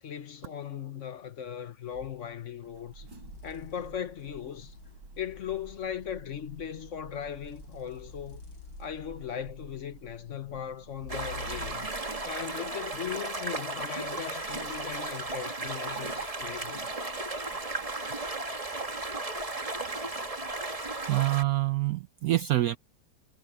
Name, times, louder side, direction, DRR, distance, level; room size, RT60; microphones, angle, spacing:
voice 1, 0.0-3.1 3.4-4.8 5.2-8.4 8.8-11.9 12.2-17.0, left 9 dB, 45° left, 1.1 m, -38 dB
sound 1, 1.9-2.2 3.1-6.1 7.3-9.6 10.9-12.0, left 4 dB, 70° left, 3.0 m, -48 dB
sound 2, 2.2-18.7, right 3 dB, 65° right, 4.3 m, -53 dB
sound 3, 11.1-21.4, right 2 dB, 20° right, 1.4 m, -35 dB
voice 2, 21.1-22.8, right 16 dB, 90° right, 0.8 m, -26 dB
omnidirectional pair, 2.1 m